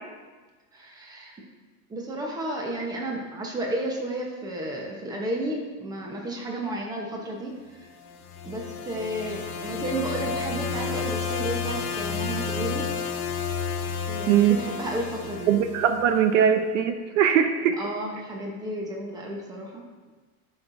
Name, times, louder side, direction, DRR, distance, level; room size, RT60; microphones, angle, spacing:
voice 1, 0.7-1.3 1.9-7.5 7.8-7.9 8.4-12.9 14.1-15.5 17.8-19.8, right 1 dB, 10° right, -1 dB, 1.0 m, -32 dB
sound 1, 8.0-16.2, left 5 dB, 85° left, 1.3 m, -31 dB
voice 2, 14.3-14.6 15.5-17.8, right 9 dB, 60° right, 7 dB, 0.7 m, -21 dB
14.5 x 5.9 x 2.7 m, 1.4 s
supercardioid pair, 155°, 42 cm